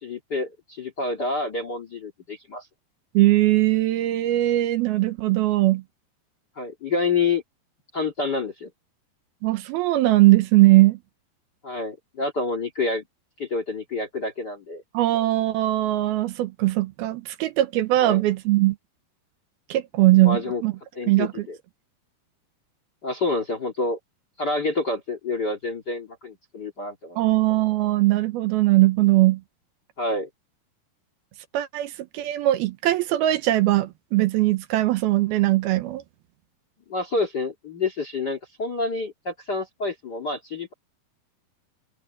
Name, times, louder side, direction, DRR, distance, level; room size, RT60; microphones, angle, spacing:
voice 1, 0.0-2.7 6.5-7.4 7.9-8.7 11.6-13.0 13.4-14.8 18.0-18.2 20.2-20.6 20.9-21.6 23.0-24.0 24.4-27.3 30.0-30.3 36.9-40.7, left 3 dB, 40° left, 1.6 m, -28 dB
voice 2, 3.1-5.8 9.4-11.0 14.9-18.8 19.7-20.7 21.1-21.5 27.2-29.4 31.5-36.0, right 17 dB, 80° right, 2.6 m, -20 dB
omnidirectional pair, 4.7 m